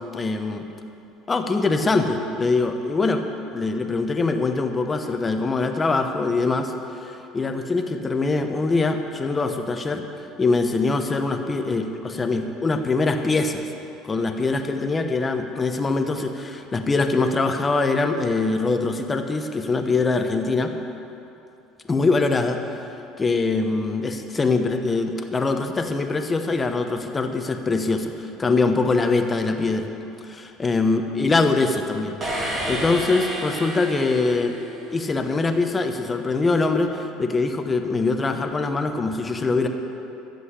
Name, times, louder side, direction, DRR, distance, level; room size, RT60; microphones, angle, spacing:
voice 1, 0.1-0.7 1.3-3.2 3.5-6.7 7.0-10.1 10.4-13.7 14.0-20.7 21.9-22.8 23.2-29.9 30.2-32.2 32.7-34.6 34.9-39.7, left 3 dB, 15° left, 5 dB, 0.8 m, -23 dB
sound 1, 32.2-35.0, right 1 dB, 25° right, 2.0 m, -30 dB
12.5 x 7.8 x 8.3 m, 2.8 s
cardioid pair, 145°, 0 cm